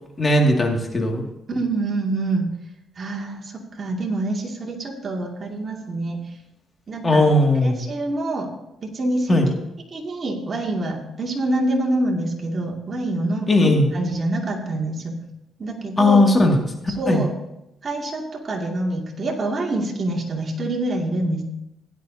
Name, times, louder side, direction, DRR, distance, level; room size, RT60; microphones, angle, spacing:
voice 1, 0.2-1.2 7.0-7.8 9.3-9.5 13.5-13.9 16.0-16.6 17.1-17.3, left 1 dB, 25° left, 1 dB, 2.2 m, -17 dB
voice 2, 1.5-2.5 3.0-6.2 6.9-7.2 7.6-8.5 8.8-9.4 9.9-15.2 15.6-16.2 17.0-17.3 17.8-21.4, right 2 dB, 40° right, -1 dB, 2.4 m, -26 dB
16.0 x 11.0 x 2.8 m, 0.89 s
cardioid pair, 90°, 0 cm